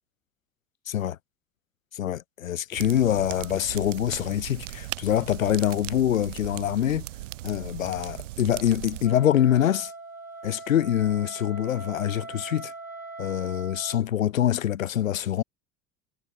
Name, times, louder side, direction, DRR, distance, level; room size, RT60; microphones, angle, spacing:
voice 1, 0.9-1.2 1.9-7.1 7.4-9.9 10.4-12.7 13.2-15.4, left 11 dB, 75° left, 0.9 m, -25 dB
sound 1, 2.7-9.1, right 16 dB, 65° right, 1.5 m, -38 dB
Wind instrument woodwind instrument, 9.0-14.0, right 3 dB, 85° right, 7.7 m, -41 dB
figure-of-eight pair, 70°, 40 cm